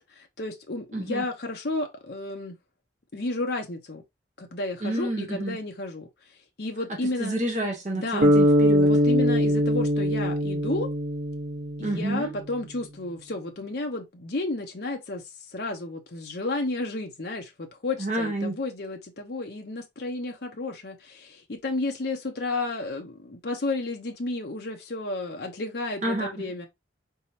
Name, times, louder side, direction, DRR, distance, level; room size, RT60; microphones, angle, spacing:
voice 1, 0.0-2.6 3.1-4.0 4.4-6.1 6.6-7.4 7.9-8.3 8.8-10.9 11.8-26.7, left 2 dB, 55° left, 0.8 m, -32 dB
voice 2, 0.9-1.2 4.8-5.6 7.0-8.9 11.8-12.3 18.0-18.6 26.0-26.4, right 1 dB, 40° right, 1.2 m, -29 dB
sound 1, 8.2-12.5, equal, 85° right, 1.1 m, -22 dB
4.2 x 3.5 x 2.8 m
head